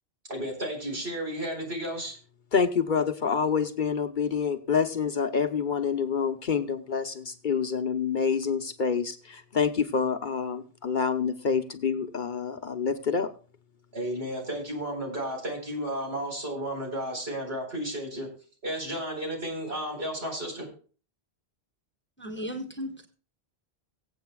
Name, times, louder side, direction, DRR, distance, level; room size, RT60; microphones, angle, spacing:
voice 1, 0.3-2.2 13.9-18.3 18.6-20.7, equal, 70° right, 1 dB, 4.6 m, -33 dB
voice 2, 2.5-13.3, left 6 dB, 50° left, 8 dB, 0.9 m, -27 dB
voice 3, 22.2-23.1, equal, 10° left, 4 dB, 1.3 m, -35 dB
23.5 x 8.1 x 2.3 m, 0.39 s
omnidirectional pair, 1.1 m